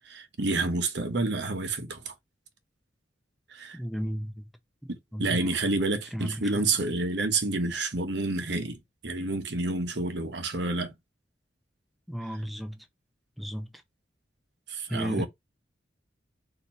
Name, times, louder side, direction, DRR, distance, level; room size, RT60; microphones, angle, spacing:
voice 1, 0.1-2.1 3.5-3.8 4.9-10.9 14.7-15.3, right 3 dB, 65° right, 1.0 m, -29 dB
voice 2, 3.7-4.5 5.1-5.6 6.1-6.7 12.1-12.8 13.4-13.7 14.9-15.3, equal, ahead, 0.6 m, -34 dB
4.4 x 2.8 x 4.1 m
head